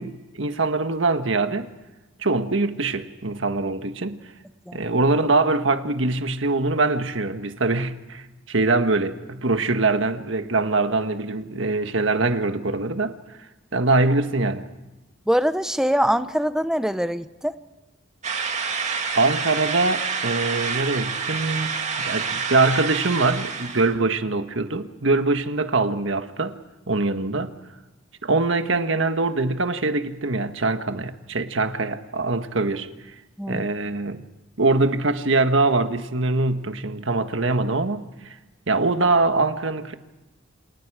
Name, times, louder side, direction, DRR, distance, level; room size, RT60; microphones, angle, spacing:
voice 1, 0.0-1.7 2.2-4.2 4.7-13.1 13.7-14.7 19.1-21.7 22.0-26.5 26.9-27.5 28.2-32.9 33.5-34.2 34.6-38.0 38.7-39.9, right 3 dB, 65° right, 1.6 m, -23 dB
voice 2, 15.3-17.6 33.4-33.6, equal, 5° right, 0.9 m, -23 dB
sound 1, 18.2-23.9, right 5 dB, 35° right, 2.3 m, -28 dB
29.0 x 27.5 x 4.9 m
head